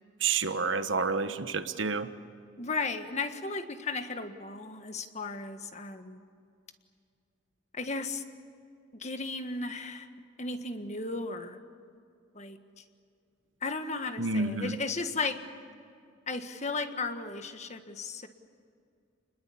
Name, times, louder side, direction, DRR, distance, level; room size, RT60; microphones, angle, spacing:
voice 1, 0.2-2.1 14.2-14.8, right 4 dB, 70° right, 10 dB, 1.3 m, -29 dB
voice 2, 2.6-6.2 7.7-8.2 9.0-10.1 10.4-11.6 12.3-12.6 13.6-15.4 16.3-18.3, left 3 dB, 35° left, 7 dB, 1.6 m, -35 dB
29.5 x 21.0 x 8.6 m, 2.3 s
head